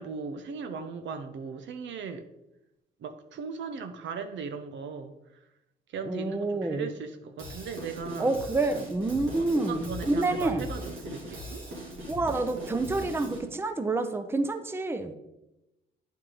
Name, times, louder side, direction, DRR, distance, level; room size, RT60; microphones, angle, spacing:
voice 1, 0.0-2.2 3.0-5.4 5.9-8.6 9.3-11.6, right 5 dB, 70° right, 9 dB, 0.6 m, -38 dB
voice 2, 6.1-6.9 8.2-10.7 12.1-15.1, right 2 dB, 10° right, 8 dB, 0.6 m, -28 dB
Drum kit / Drum, 7.4-13.4, equal, 85° right, 2.7 m, -40 dB
9.2 x 4.7 x 3.8 m, 0.93 s
cardioid pair, 90°, 20 cm